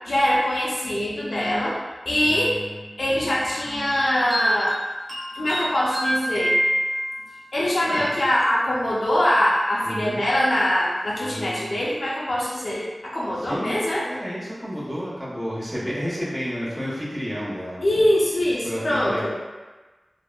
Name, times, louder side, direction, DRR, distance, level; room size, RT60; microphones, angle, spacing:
voice 1, 0.0-1.8 2.1-2.5 3.0-4.7 5.3-6.6 7.5-14.1 17.8-19.3, left 1 dB, 75° left, -6 dB, 0.6 m, -23 dB
voice 2, 2.2-2.9 7.8-8.1 9.8-10.2 11.2-11.8 13.3-18.1 18.6-19.3, equal, 15° right, -7 dB, 0.8 m, -31 dB
sound 1, 3.9-7.4, equal, 50° right, 1.0 m, -26 dB
3.4 x 2.0 x 2.4 m, 1.2 s
wide cardioid pair, 55°, 0 cm